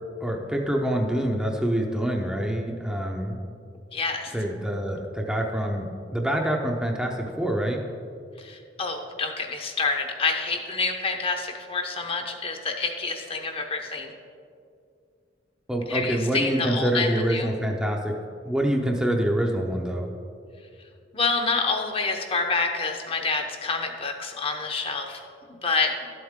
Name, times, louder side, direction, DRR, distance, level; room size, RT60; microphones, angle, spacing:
voice 1, 0.2-3.4 4.3-5.9 6.1-7.8 15.7-18.1 18.5-20.1, right 1 dB, 5° right, 1 dB, 0.7 m, -26 dB
voice 2, 3.9-4.3 8.4-14.1 15.9-17.5 21.1-26.1, left 4 dB, 30° left, 4 dB, 0.8 m, -28 dB
12.0 x 7.9 x 3.7 m, 2.4 s
head